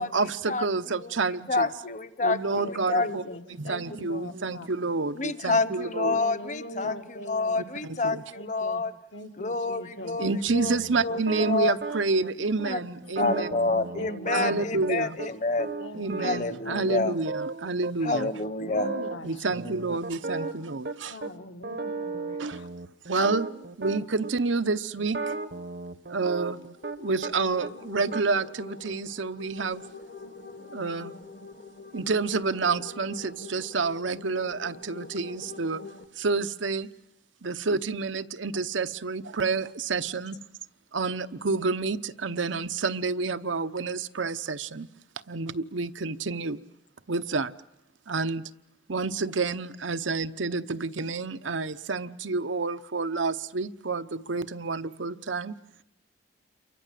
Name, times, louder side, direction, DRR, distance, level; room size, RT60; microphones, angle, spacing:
voice 1, 0.0-1.7 2.2-3.2 3.6-6.2 6.8-6.9 7.6-8.2 10.2-13.5 14.3-15.2 16.0-18.3 19.2-21.2 22.4-22.6 23.1-23.5 23.8-25.3 26.1-26.6 27.0-29.8 30.7-31.1 31.9-35.8 36.2-36.9 37.4-40.4 40.9-44.9 45.3-46.6 47.1-47.5 48.1-48.4 48.9-55.5, right 4 dB, 90° right, 0.9 m, -29 dB
voice 2, 1.5-3.4 5.1-8.9 9.4-11.8 12.6-12.9 13.2-15.7 16.2-17.2 18.0-18.9, left 3 dB, 40° left, 1.1 m, -28 dB
voice 3, 2.5-4.7 5.9-7.6 8.3-8.8 9.1-10.2 11.2-11.5 13.2-14.5 15.8-16.3 16.6-17.0 18.1-18.2 18.6-20.0 21.1-22.7 23.9-24.1, left 1 dB, 80° left, 1.9 m, -41 dB
sound 1, 10.2-12.3 12.6-12.7 13.0-15.3 15.6-17.9 18.2-18.3 18.6-19.2 19.5-21.3 21.6-24.3 25.0-27.3 27.6-28.2, right 3 dB, 55° right, 0.9 m, -35 dB
sound 2, 26.6-36.0, left 3 dB, 60° left, 1.5 m, -44 dB
29.0 x 23.5 x 7.6 m
head